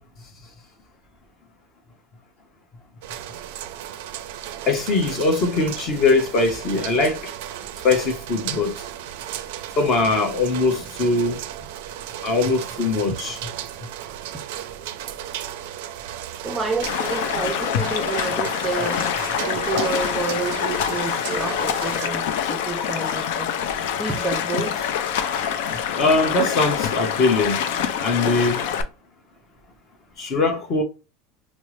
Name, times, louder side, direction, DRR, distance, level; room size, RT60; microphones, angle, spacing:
sound 1, 3.0-22.1, right 11 dB, 75° right, 0.4 m, -35 dB
voice 1, 4.7-7.3 7.8-8.7 9.8-11.4 12.2-13.4 26.0-27.6 28.0-28.6 30.2-30.8, left 3 dB, 30° left, 1.0 m, -21 dB
voice 2, 16.4-19.0 19.4-23.5 24.0-24.9, right 4 dB, 10° right, 0.5 m, -29 dB
Stream, 16.8-28.8, left 8 dB, 70° left, 0.5 m, -25 dB
5.3 x 2.0 x 3.1 m
supercardioid pair, 170°, 0 cm